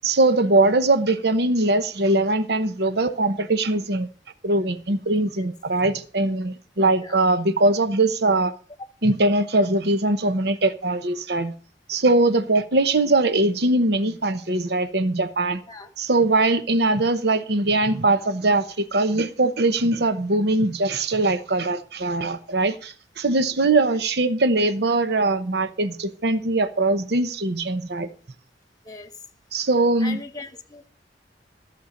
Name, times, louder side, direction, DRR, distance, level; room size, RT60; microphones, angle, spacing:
voice 1, 0.0-4.1 4.4-8.5 9.0-11.5 11.9-15.6 16.0-28.1 29.5-30.2, right 2 dB, 60° right, 0.9 m, -21 dB
voice 2, 30.0-30.9, left 3 dB, 20° left, 1.2 m, -39 dB
14.5 x 6.9 x 5.1 m
head